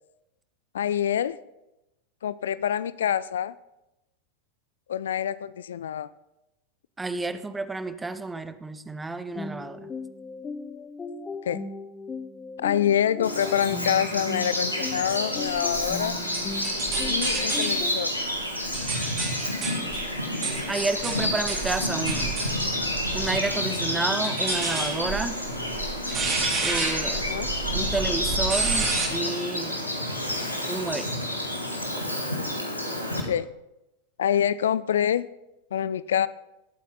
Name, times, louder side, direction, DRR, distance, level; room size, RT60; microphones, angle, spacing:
voice 1, 0.7-1.4 2.2-3.5 4.9-6.1 11.5-11.6 12.6-16.2 17.0-18.1 27.1-27.5 33.2-33.5 34.2-35.3 35.7-36.3, left 9 dB, 65° left, 18 dB, 0.4 m, -26 dB
voice 2, 7.0-9.9 20.7-22.4 23.1-25.4 26.6-27.2 27.7-29.8 30.6-31.2, right 3 dB, 10° right, 13 dB, 0.7 m, -30 dB
sound 1, 9.3-18.1, left 3 dB, 15° left, 0.9 m, -37 dB
Bird vocalization bird call bird song, 13.2-33.2, left 1 dB, 85° left, 2.1 m, -29 dB
sound 2, 15.7-17.8 18.4-23.5 24.2-29.1, right 4 dB, 30° right, 3.6 m, -31 dB
21.0 x 8.4 x 3.9 m, 0.92 s
figure-of-eight pair, 90°, 0 cm